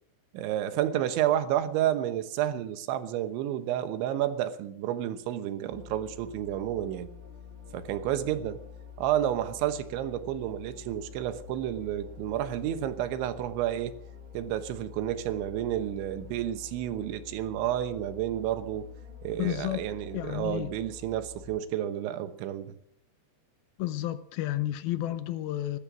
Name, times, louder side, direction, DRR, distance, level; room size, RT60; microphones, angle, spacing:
voice 1, 0.3-7.1 7.7-8.6 9.0-13.9 14.3-18.9 19.2-22.7, right 11 dB, 85° right, 3.5 m, -30 dB
sound 1, 5.7-21.6, left 7 dB, 15° right, 1.8 m, -47 dB
voice 2, 19.4-19.9 20.1-20.7 23.8-25.8, left 14 dB, 85° left, 2.1 m, -31 dB
19.5 x 12.0 x 6.2 m
omnidirectional pair, 5.3 m